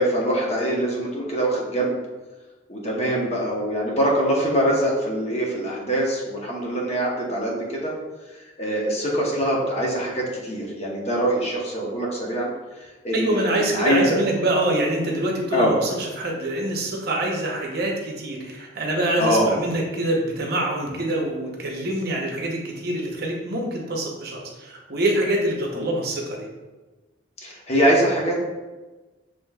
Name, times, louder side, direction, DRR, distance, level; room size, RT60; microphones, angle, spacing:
voice 1, 0.0-2.0 2.7-7.9 8.6-12.5 13.0-14.0 15.5-15.7 19.2-19.5 25.7-25.9 27.4-28.4, right 1 dB, 35° left, -3 dB, 0.9 m, -23 dB
voice 2, 13.1-26.5, right 1 dB, 55° right, -1 dB, 0.9 m, -25 dB
7.3 x 3.1 x 2.3 m, 1.2 s
head